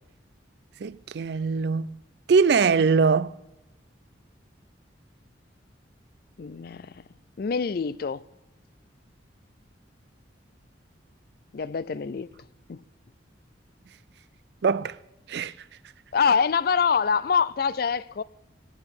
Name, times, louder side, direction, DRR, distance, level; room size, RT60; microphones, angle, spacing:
voice 1, 0.8-1.9 2.3-3.3 14.6-15.0 15.3-15.5, right 5 dB, 60° right, 0.4 m, -22 dB
voice 2, 6.4-7.0 7.4-8.2 11.5-12.4 12.7-12.8 16.1-18.2, left 6 dB, 50° left, 0.4 m, -25 dB
15.0 x 9.8 x 7.0 m
head